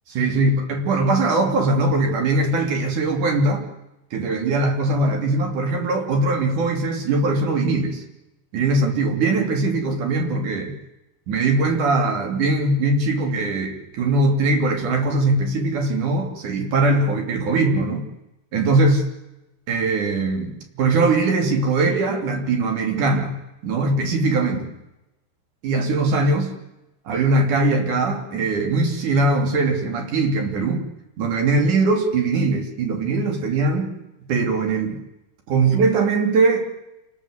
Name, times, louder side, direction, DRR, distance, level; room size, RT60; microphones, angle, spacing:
voice 1, 0.1-3.6 4.1-8.0 8.5-10.7 11.3-18.1 18.5-19.0 19.7-23.4 23.6-24.7 25.6-26.5 27.1-30.8 31.2-33.9 34.3-35.0 35.5-36.7, right 3 dB, 50° right, 3 dB, 4.3 m, -21 dB
28.0 x 19.5 x 8.1 m, 0.95 s
omnidirectional pair, 4.6 m